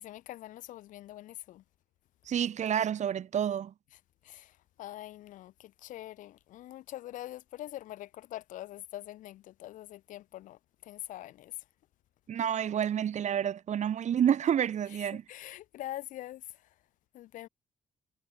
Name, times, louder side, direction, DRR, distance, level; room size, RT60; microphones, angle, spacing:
voice 1, 0.0-1.6 4.2-4.5 4.8-11.5 15.0-16.4 17.1-17.5, left 14 dB, 90° left, 4.3 m, -44 dB
voice 2, 2.3-3.7 12.3-15.2, right 9 dB, 65° right, 2.7 m, -29 dB
cardioid pair, 75°, 13 cm